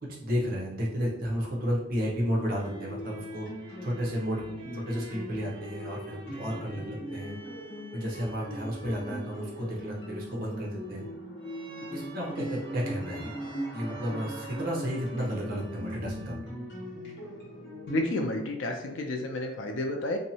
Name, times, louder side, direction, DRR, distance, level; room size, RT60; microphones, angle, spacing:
voice 1, 0.0-3.5 3.8-4.4 4.7-7.4 7.9-11.0 11.9-16.5, equal, 50° right, -3 dB, 0.8 m, -32 dB
sound 1, 2.2-16.8, right 2 dB, 30° right, 0.3 m, -49 dB
sound 2, 2.6-18.4, equal, 60° left, 0.9 m, -40 dB
voice 2, 17.9-20.2, left 1 dB, 80° left, 3 dB, 0.5 m, -30 dB
2.7 x 2.1 x 2.7 m, 0.85 s
head